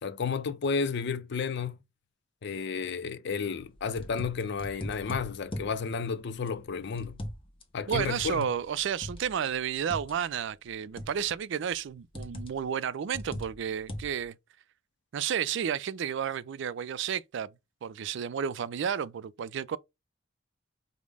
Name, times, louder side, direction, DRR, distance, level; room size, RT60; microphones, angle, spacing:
voice 1, 0.0-1.7 2.4-7.2 7.7-8.5, left 5 dB, 60° left, 0.5 m, -32 dB
tapping steering wheel with finger, 3.6-5.8 6.5-7.6 7.9-10.2 11.0-11.4 12.1-12.6 13.1-14.2, left 1 dB, 30° left, 0.8 m, -40 dB
voice 2, 7.9-14.4 15.1-17.5 17.8-19.8, right 8 dB, 65° right, 0.4 m, -32 dB
5.1 x 2.1 x 3.4 m
head